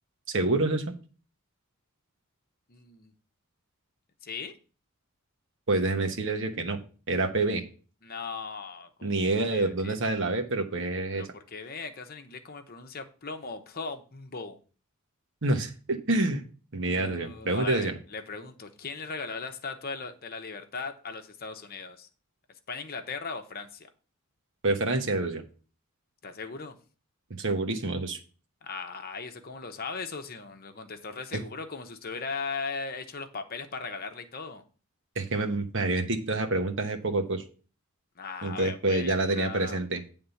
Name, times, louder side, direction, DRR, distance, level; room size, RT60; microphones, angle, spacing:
voice 1, 0.3-0.9 5.7-6.8 7.1-7.6 9.0-11.3 15.4-16.4 16.7-17.9 24.6-25.4 27.4-28.2 35.1-37.4 38.4-40.0, right 2 dB, 60° right, 1.2 m, -27 dB
voice 2, 2.7-3.1 4.2-4.6 8.0-9.1 9.5-9.9 11.1-14.6 16.9-22.1 22.7-23.9 26.2-26.8 28.6-34.6 38.2-39.8, left 4 dB, 45° left, 0.9 m, -38 dB
9.5 x 3.6 x 7.0 m
head